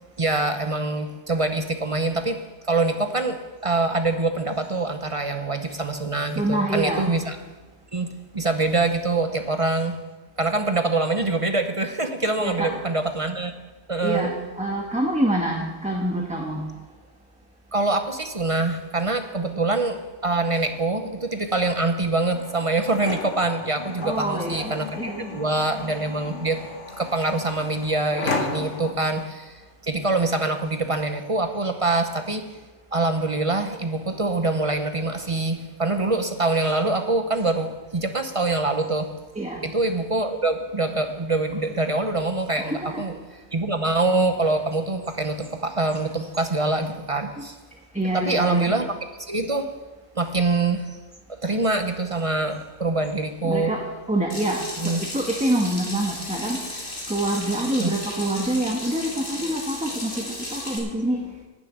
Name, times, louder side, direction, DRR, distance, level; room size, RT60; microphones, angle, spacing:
voice 1, 0.2-7.4 7.9-10.0 10.4-13.6 13.9-14.3 17.7-32.6 32.9-39.2 39.6-47.6 48.1-49.8 50.1-51.0 51.4-53.7 54.8-55.0 57.7-57.9, right 2 dB, 30° right, 7 dB, 0.7 m, -25 dB
voice 2, 6.4-7.2 12.4-12.7 14.0-16.6 24.0-25.4 39.4-39.6 42.6-43.0 47.9-48.8 53.4-53.8 54.1-56.6 57.1-61.2, right 1 dB, 5° right, 0 dB, 1.1 m, -26 dB
sound 1, 22.1-28.9, left 4 dB, 75° left, 1.6 m, -34 dB
Water tap faucet / Sink (filling or washing), 54.3-60.8, left 1 dB, 45° left, 3.0 m, -34 dB
11.5 x 6.9 x 9.3 m, 1.2 s
omnidirectional pair, 1.3 m